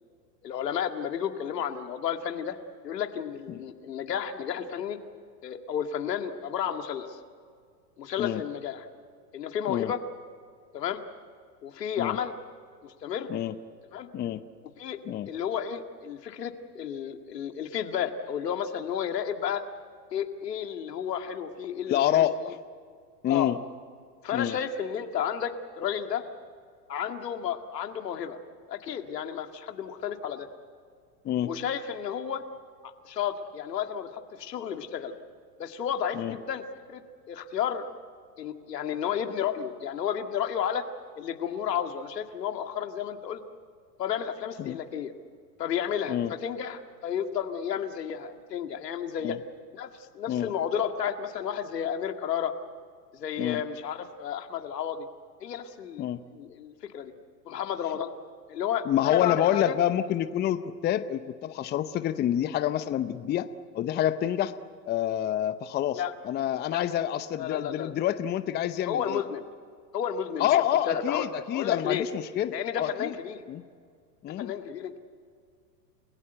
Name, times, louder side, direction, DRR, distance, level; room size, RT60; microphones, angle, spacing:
voice 1, 0.4-2.6 2.8-5.0 5.4-7.2 8.0-8.9 9.3-10.0 10.7-11.0 11.6-12.3 12.8-13.3 13.9-14.1 14.6-15.0 15.3-19.6 20.1-22.3 23.3-23.5 24.2-26.2 26.9-28.4 28.7-30.5 31.4-32.4 32.8-35.2 35.6-37.9 38.4-40.8 41.2-43.4 44.0-45.1 45.6-49.4 49.7-52.5 53.1-55.1 55.4-56.1 56.3-57.1 57.5-58.1 58.5-59.8 65.9-66.1 66.7-66.8 67.4-67.9 68.9-69.4 69.9-70.6 70.9-71.3 71.5-72.0 72.5-73.4 74.3-75.0, left 8 dB, 75° left, 6 dB, 2.1 m, -32 dB
voice 2, 21.9-22.6 23.2-23.6 24.3-24.6 31.2-31.5 36.1-36.3 44.6-44.8 46.1-46.3 49.2-49.4 50.3-50.5 53.4-53.6 56.0-56.2 58.9-63.5 63.7-64.5 64.9-69.2 70.4-73.1 73.5-73.6 74.2-74.5, left 11 dB, 20° left, 12 dB, 0.7 m, -27 dB
30.0 x 16.5 x 8.0 m, 2.1 s
hypercardioid pair, 105°, 49 cm